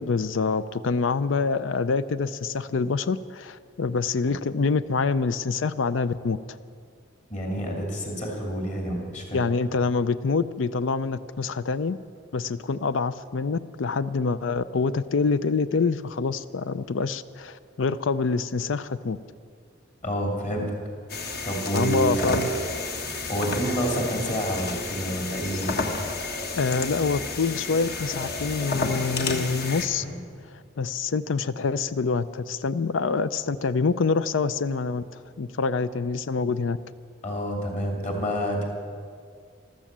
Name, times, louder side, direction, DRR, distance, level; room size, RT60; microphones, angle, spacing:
voice 1, 0.0-6.4 9.3-12.0 12.3-19.2 21.7-22.5 26.5-30.0 30.8-35.0 35.4-36.8, left 4 dB, 90° left, 15 dB, 0.5 m, -26 dB
voice 2, 7.3-9.4 20.0-20.8 21.4-22.3 23.3-25.7 30.0-30.1 37.2-38.6, equal, 40° left, 1 dB, 2.7 m, -28 dB
sound 1, 21.1-29.9, left 3 dB, 55° left, 1.4 m, -31 dB
14.0 x 13.0 x 7.5 m, 2.2 s
head